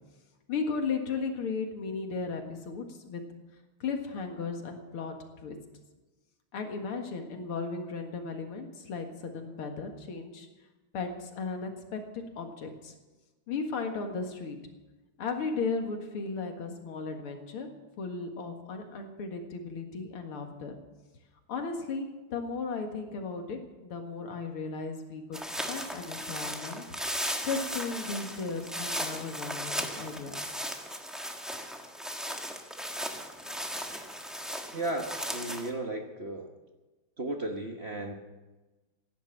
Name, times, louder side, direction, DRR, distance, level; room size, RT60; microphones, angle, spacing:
voice 1, 0.5-3.2 3.8-5.2 5.4-5.6 6.5-10.5 10.9-12.9 13.5-14.6 15.2-17.7 18.0-20.7 21.5-25.4 25.7-26.8 27.1-30.4, left 4 dB, 75° left, 4 dB, 2.6 m, -35 dB
sound 1, 25.3-35.7, equal, ahead, 1.0 m, -36 dB
voice 2, 34.7-36.5 37.2-38.2, right 2 dB, 35° right, 2 dB, 1.1 m, -35 dB
16.5 x 10.5 x 7.4 m, 1.2 s
omnidirectional pair, 2.4 m